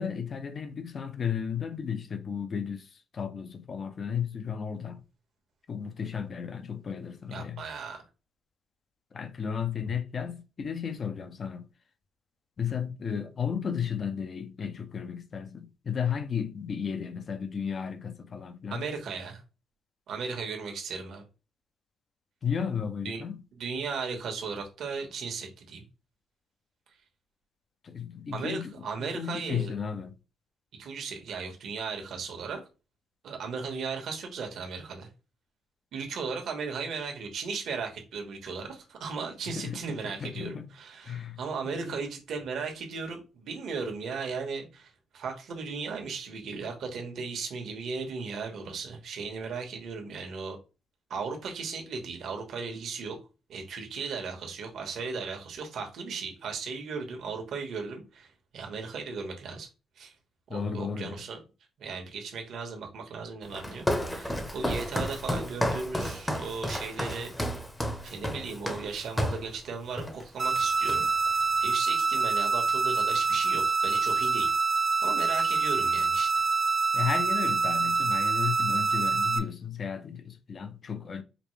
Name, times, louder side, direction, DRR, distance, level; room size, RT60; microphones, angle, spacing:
voice 1, 0.0-5.0 5.7-7.6 9.1-11.7 12.6-18.8 22.4-23.4 27.8-28.7 29.0-30.2 39.5-40.7 41.0-41.4 41.6-42.0 60.5-61.2 76.9-81.2, left 7 dB, 45° left, 0.6 m, -34 dB
voice 2, 7.3-8.0 18.7-19.4 20.1-21.2 23.0-23.2 23.5-25.8 28.3-29.7 30.8-32.6 33.2-35.1 35.9-50.6 51.1-53.2 53.5-59.7 60.0-60.1 60.5-61.4 61.8-67.3 68.0-71.1 71.3-74.6 75.0-76.4, right 5 dB, 70° right, 1.3 m, -36 dB
Walk footsteps, 63.5-69.5 70.0-70.2 70.5-71.3, left 1 dB, 10° left, 0.8 m, -32 dB
sound 1, 70.4-79.4, right 4 dB, 35° right, 0.6 m, -26 dB
5.1 x 2.1 x 3.2 m
cardioid pair, 90°, 0 cm